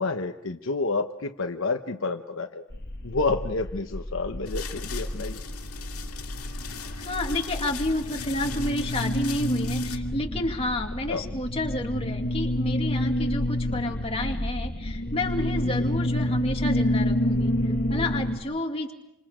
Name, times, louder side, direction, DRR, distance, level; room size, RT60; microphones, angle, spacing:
voice 1, 0.0-2.6 3.0-5.4 11.1-11.2 15.8-15.9, left 3 dB, 65° left, 5 dB, 1.0 m, -29 dB
sound 1, 2.7-18.4, left 1 dB, 45° left, 1.5 m, -29 dB
sound 2, 4.5-10.0, left 7 dB, 90° left, 2.2 m, -39 dB
voice 2, 7.0-18.9, left 1 dB, 25° left, 2 dB, 2.2 m, -30 dB
29.0 x 26.5 x 5.1 m, 0.82 s
head